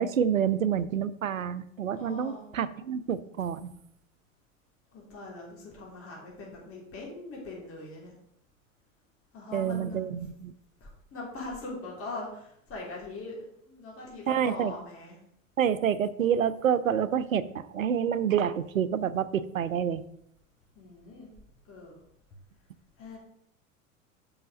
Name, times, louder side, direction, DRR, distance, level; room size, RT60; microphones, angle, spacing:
voice 1, 0.0-3.7 9.5-10.5 14.3-14.7 15.6-20.0, right 8 dB, 90° right, 15 dB, 0.5 m, -28 dB
voice 2, 1.9-2.5 4.9-8.2 9.3-10.0 10.8-15.2 20.8-21.3 21.7-22.0 23.0-23.2, left 2 dB, 35° left, -3 dB, 3.3 m, -41 dB
5.7 x 5.5 x 6.2 m, 0.73 s
figure-of-eight pair, 80°, 39 cm